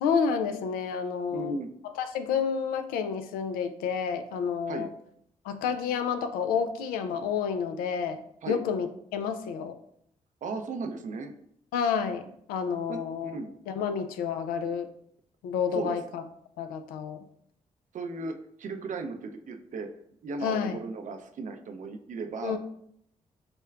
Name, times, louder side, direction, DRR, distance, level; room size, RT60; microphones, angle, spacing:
voice 1, 0.0-1.6 2.0-4.9 5.4-9.7 11.7-13.4 13.7-14.9 15.4-16.2 16.6-17.2 20.4-20.8 22.4-22.6, left 6 dB, 85° left, 9 dB, 0.4 m, -30 dB
voice 2, 1.3-1.7 4.7-4.9 8.4-8.6 10.4-11.3 12.9-13.5 15.7-16.0 17.9-19.9 20.2-22.6, right 4 dB, 60° right, 6 dB, 0.5 m, -36 dB
6.5 x 2.2 x 2.3 m, 0.69 s
hypercardioid pair, 45°, 15 cm